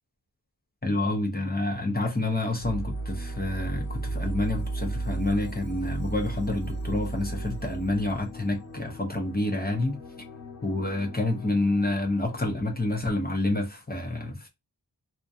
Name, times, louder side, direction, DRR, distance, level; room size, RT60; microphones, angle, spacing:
voice 1, 0.8-10.0 10.6-14.5, left 2 dB, 20° left, 0.5 m, -28 dB
sound 1, 2.6-12.5, right 2 dB, 70° left, 1.1 m, -35 dB
2.4 x 2.1 x 2.6 m
wide cardioid pair, 60°, 45 cm